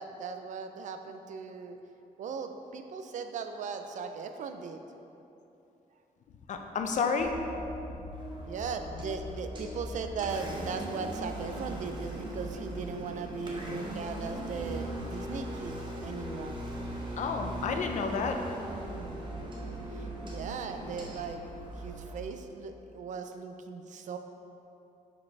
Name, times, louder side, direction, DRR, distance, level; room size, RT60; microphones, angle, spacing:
voice 1, 0.0-1.8 2.2-4.8 8.5-16.6 19.9-21.4 21.7-24.2, right 5 dB, 60° right, 7 dB, 0.4 m, -38 dB
voice 2, 6.5-7.3 17.2-18.4, left 5 dB, 60° left, 4 dB, 0.5 m, -30 dB
sound 1, 7.2-22.3, equal, 5° right, 1.0 m, -42 dB
Engine, 8.1-22.2, right 1 dB, 35° right, 0.9 m, -42 dB
5.2 x 5.0 x 4.6 m, 2.9 s
wide cardioid pair, 150°, 14 cm